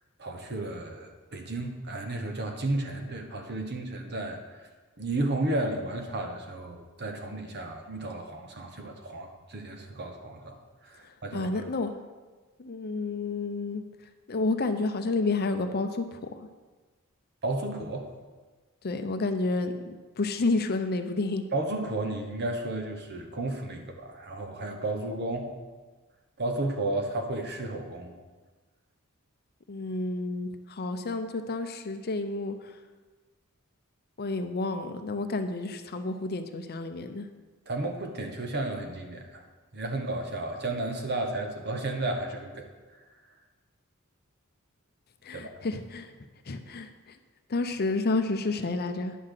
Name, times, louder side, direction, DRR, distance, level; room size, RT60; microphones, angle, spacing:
voice 1, 0.2-4.7 5.0-11.5 17.4-18.1 21.5-25.5 26.4-28.1 37.7-39.5 39.7-43.0 45.3-45.5, right 2 dB, 50° right, 4 dB, 1.2 m, -33 dB
voice 2, 11.0-11.9 12.6-13.8 14.3-16.5 18.8-21.5 29.7-32.8 34.2-37.3 45.2-46.1 46.4-47.2 47.5-49.2, left 3 dB, 45° left, 8 dB, 0.6 m, -30 dB
10.0 x 5.8 x 6.6 m, 1.3 s
head